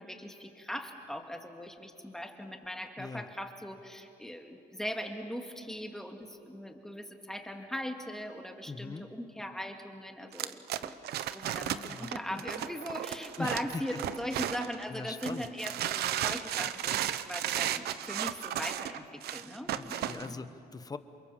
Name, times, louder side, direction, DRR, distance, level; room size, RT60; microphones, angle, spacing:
voice 1, 0.0-11.0 11.3-20.4, equal, 5° left, 4 dB, 2.2 m, -40 dB
voice 2, 3.0-3.3 8.7-9.1 11.6-12.4 13.4-13.8 14.9-15.5 19.7-21.0, left 4 dB, 20° left, 11 dB, 1.1 m, -41 dB
sound 1, 10.3-14.8 15.2-20.3, right 11 dB, 70° right, 0.9 m, -34 dB
28.0 x 23.0 x 7.3 m, 2.7 s
cardioid pair, 110°, 17 cm